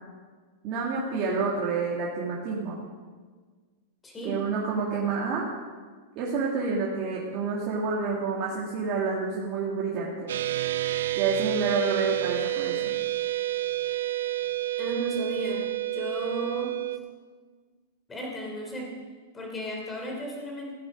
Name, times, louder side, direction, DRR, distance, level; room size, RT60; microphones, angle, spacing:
voice 1, 0.6-2.8 4.2-5.4 6.2-10.3 11.2-12.9, right 4 dB, 35° right, -5 dB, 2.3 m, -28 dB
voice 2, 4.0-4.4 14.8-16.8 18.1-18.9 19.3-20.7, equal, 10° left, 0 dB, 3.0 m, -34 dB
sound 1, 10.3-17.0, right 15 dB, 80° right, 0.6 m, -29 dB
15.5 x 9.7 x 5.2 m, 1.5 s
supercardioid pair, 160°, 0 cm